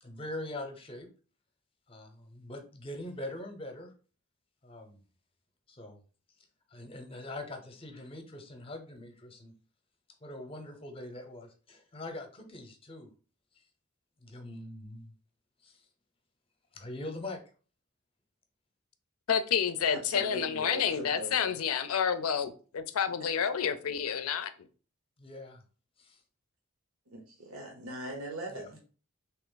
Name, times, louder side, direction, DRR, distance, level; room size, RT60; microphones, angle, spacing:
voice 1, 0.0-1.1 1.9-3.9 4.6-5.0 5.7-6.0 6.7-9.5 10.2-13.1 14.2-15.1 15.6-15.8 16.7-17.4 25.2-25.6 26.0-26.2 28.5-28.8, left 1 dB, 25° left, 5 dB, 0.7 m, -43 dB
voice 2, 19.3-24.5, left 7 dB, 80° left, 11 dB, 0.5 m, -29 dB
voice 3, 19.8-21.5 27.1-28.8, right 1 dB, 80° right, 1 dB, 0.9 m, -41 dB
3.4 x 2.9 x 3.8 m, 0.39 s
head